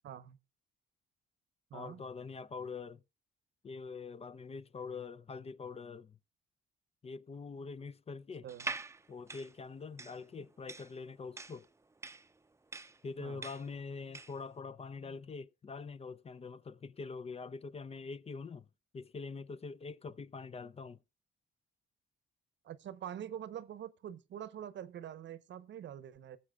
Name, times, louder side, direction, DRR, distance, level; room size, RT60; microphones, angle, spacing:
voice 1, 0.0-0.4 1.7-2.0 8.4-8.7 13.2-13.5 22.6-26.4, right 10 dB, 65° right, 0.9 m, -45 dB
voice 2, 1.7-3.0 3.6-6.2 7.0-8.5 9.1-11.7 13.0-18.7 18.9-21.0, left 4 dB, 30° left, 0.5 m, -44 dB
sound 1, 8.5-14.5, right 3 dB, 15° right, 0.6 m, -45 dB
21.0 x 7.3 x 2.3 m
cardioid pair, 90°, 20 cm